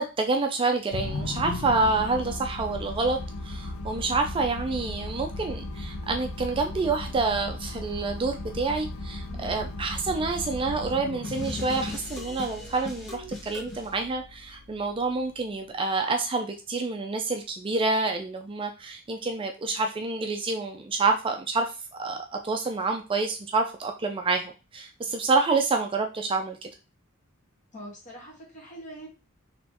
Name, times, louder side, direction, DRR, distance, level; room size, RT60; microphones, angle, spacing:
voice 1, 0.0-26.7, right 3 dB, 25° right, 4 dB, 0.4 m, -28 dB
sound 1, 0.9-15.4, left 2 dB, 70° left, 0.6 m, -37 dB
voice 2, 9.2-9.5 27.7-29.1, right 1 dB, 35° left, -2 dB, 1.4 m, -43 dB
sound 2, 11.2-13.9, left 2 dB, 55° left, 1.5 m, -38 dB
4.1 x 3.0 x 2.9 m, 0.31 s
head